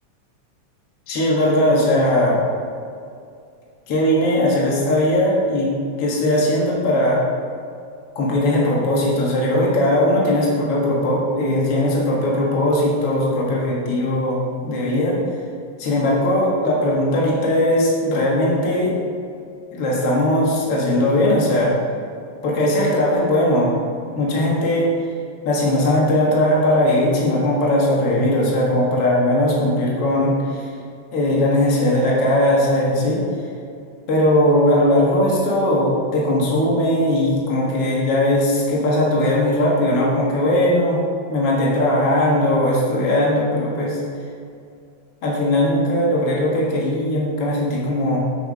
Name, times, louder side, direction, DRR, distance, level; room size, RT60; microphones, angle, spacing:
voice 1, 1.1-2.4 3.9-5.7 6.0-7.2 8.2-15.2 15.8-19.0 19.7-21.8 22.4-23.7 24.2-24.9 25.4-30.7 31.1-33.2 34.1-41.0 41.3-44.0 45.2-48.3, left 1 dB, 55° left, -4 dB, 2.4 m, -19 dB
8.2 x 5.9 x 4.8 m, 2.4 s
omnidirectional pair, 3.4 m